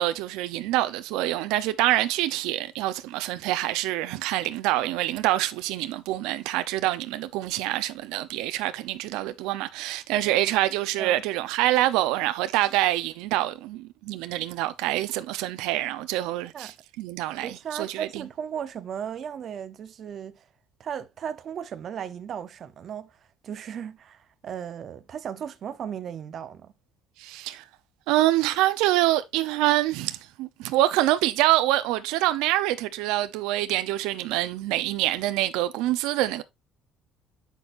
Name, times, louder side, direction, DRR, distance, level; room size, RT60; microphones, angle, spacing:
voice 1, 0.0-18.2 27.2-27.6 28.1-36.4, right 15 dB, 90° right, 0.7 m, -26 dB
voice 2, 17.4-20.4 20.8-26.7, right 8 dB, 40° right, 0.7 m, -36 dB
8.3 x 6.1 x 2.6 m
cardioid pair, 160°, 0 cm